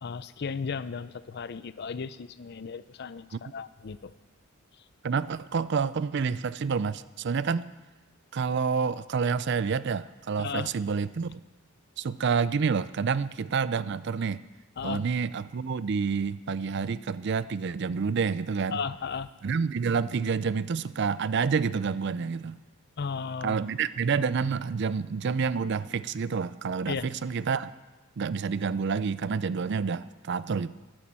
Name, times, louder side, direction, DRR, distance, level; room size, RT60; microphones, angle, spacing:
voice 1, 0.0-4.1 10.4-10.7 14.8-15.0 18.7-19.3 23.0-23.6 26.9-27.1, left 5 dB, 50° left, 15 dB, 0.5 m, -35 dB
voice 2, 5.0-7.7 8.3-11.3 12.0-14.4 14.8-18.8 19.4-22.6 23.4-27.7 28.2-30.7, right 5 dB, 55° right, 16 dB, 0.4 m, -28 dB
11.5 x 11.0 x 7.5 m, 1.2 s
head